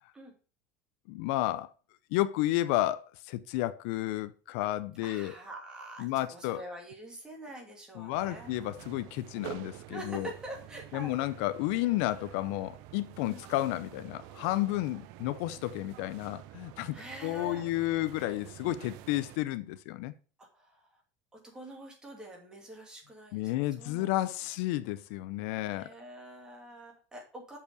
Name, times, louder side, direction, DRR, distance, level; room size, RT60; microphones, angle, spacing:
voice 1, 1.1-1.7 2.1-5.3 6.0-6.6 7.9-10.3 10.9-17.0 17.2-20.1 23.3-25.9, left 16 dB, 70° left, 0.5 m, -32 dB
voice 2, 5.0-8.5 9.9-11.2 13.3-13.5 16.9-18.0 20.4-21.0 21.3-23.5 23.8-24.1 24.4-24.5 25.6-27.6, right 1 dB, 10° right, 2.5 m, -45 dB
sound 1, 8.1-19.4, right 14 dB, 60° right, 0.6 m, -48 dB
6.7 x 5.5 x 5.2 m
cardioid pair, 155°, 7 cm